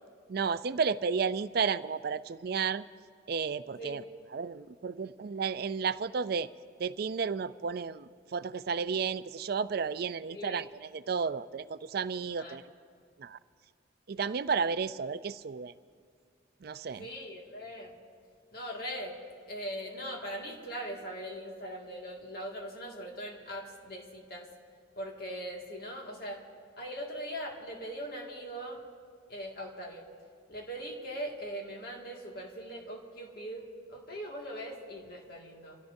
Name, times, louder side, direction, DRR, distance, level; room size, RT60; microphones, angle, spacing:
voice 1, 0.3-2.8 3.3-4.0 4.3-6.5 6.8-12.6 13.2-13.4 14.1-15.7 16.6-17.0, right 5 dB, 50° right, 14 dB, 0.4 m, -32 dB
voice 2, 10.3-10.7 12.3-12.6 17.0-18.0 18.5-19.2 19.5-24.5 25.0-26.4 26.8-28.8 29.3-30.1 30.5-35.8, equal, 50° left, 0 dB, 2.0 m, -40 dB
26.0 x 16.5 x 2.7 m, 2.2 s
head